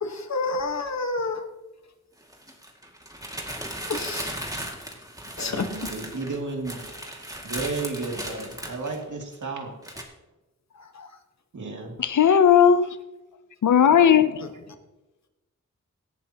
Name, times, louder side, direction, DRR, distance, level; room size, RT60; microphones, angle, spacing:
voice 1, 0.0-1.5 3.9-4.3 5.4-5.7 10.9-11.1, left 3 dB, 60° left, 1.4 m, -29 dB
sound 1, 0.6-0.7 2.2-9.4 9.8-10.0, right 1 dB, 10° right, 2.2 m, -36 dB
voice 2, 5.4-6.8 7.4-9.7 11.5-12.0, right 3 dB, 70° right, 2.7 m, -33 dB
voice 3, 12.0-13.0 13.6-14.4, left 8 dB, 75° left, 0.7 m, -17 dB
18.0 x 11.0 x 3.0 m
wide cardioid pair, 65°, 31 cm